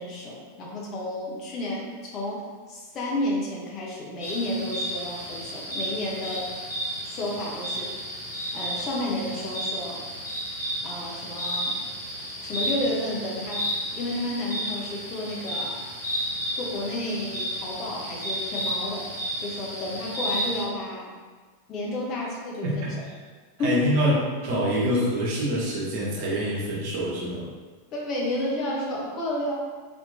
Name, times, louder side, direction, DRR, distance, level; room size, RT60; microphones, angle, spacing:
voice 1, 0.0-6.5 7.0-7.9 8.5-10.0 10.8-11.7 12.4-13.6 13.9-15.8 16.6-19.1 19.4-21.1 21.7-22.7 23.6-23.8 27.9-29.5, left 1 dB, 35° left, -3 dB, 0.8 m, -31 dB
sound 1, 4.2-20.6, equal, 60° left, 1.5 m, -32 dB
voice 2, 22.6-23.1 23.6-24.1 24.4-27.5, equal, 50° right, -5 dB, 1.0 m, -25 dB
3.4 x 2.9 x 2.6 m, 1.4 s
figure-of-eight pair, 90°, 0 cm